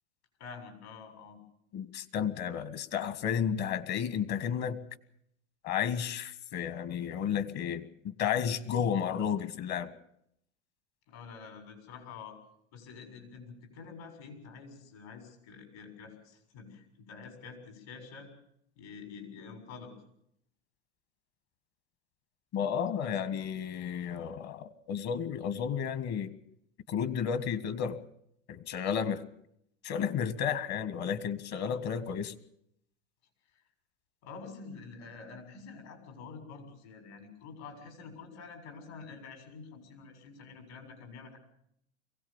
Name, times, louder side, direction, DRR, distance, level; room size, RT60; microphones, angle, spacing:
voice 1, 0.4-1.4 11.1-12.4 12.7-18.3 18.8-19.9 23.0-23.3 34.2-41.4, left 5 dB, 70° left, 5 dB, 7.0 m, -47 dB
voice 2, 1.7-4.8 5.6-9.9 22.5-26.3 26.9-28.0 28.5-29.2 29.8-32.3, left 8 dB, 50° left, 13 dB, 1.7 m, -32 dB
23.0 x 17.0 x 7.2 m, 0.72 s
hypercardioid pair, 95°, 35 cm